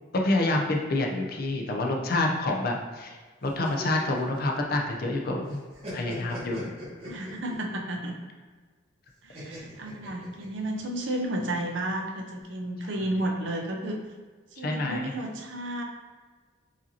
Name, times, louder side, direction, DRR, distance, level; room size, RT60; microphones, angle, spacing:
voice 1, 0.1-3.2 3.4-5.6 5.9-6.7 14.6-15.1, left 2 dB, 45° left, 1 dB, 0.5 m, -27 dB
sound 1, 3.4-5.2 5.5-7.7 9.3-10.8, left 1 dB, 30° right, 1.2 m, -41 dB
voice 2, 7.0-8.1 9.2-14.0 14.6-15.8, right 1 dB, 65° right, 2 dB, 0.5 m, -32 dB
4.8 x 2.7 x 2.7 m, 1.4 s
head